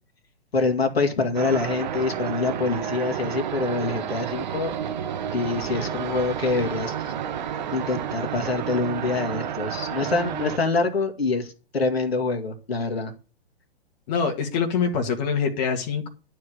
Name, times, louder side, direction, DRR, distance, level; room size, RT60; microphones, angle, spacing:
voice 1, 0.5-4.7 5.3-7.1 7.7-13.1, left 3 dB, 65° left, 2.3 m, -25 dB
sound 1, 1.3-10.6, right 9 dB, 45° right, 1.3 m, -30 dB
voice 2, 14.1-16.1, left 6 dB, 40° left, 2.1 m, -24 dB
11.5 x 5.0 x 8.2 m
figure-of-eight pair, 115°, 32 cm